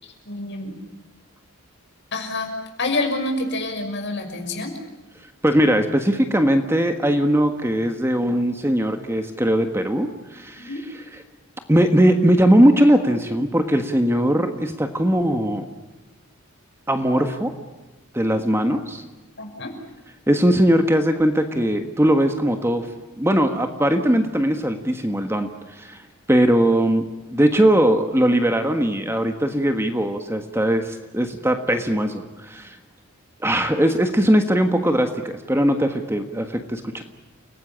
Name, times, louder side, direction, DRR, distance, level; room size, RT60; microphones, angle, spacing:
voice 1, 0.0-0.8 2.1-2.5 2.8-4.7 10.7-10.8 19.4-19.7, left 2 dB, 55° left, 4 dB, 6.2 m, -27 dB
voice 2, 5.4-10.7 11.7-15.7 16.9-17.5 18.1-19.0 20.3-22.9 23.2-26.0 26.3-27.1 27.3-32.8 33.4-37.0, equal, 10° right, 6 dB, 1.5 m, -20 dB
30.0 x 18.5 x 8.8 m, 1.1 s
head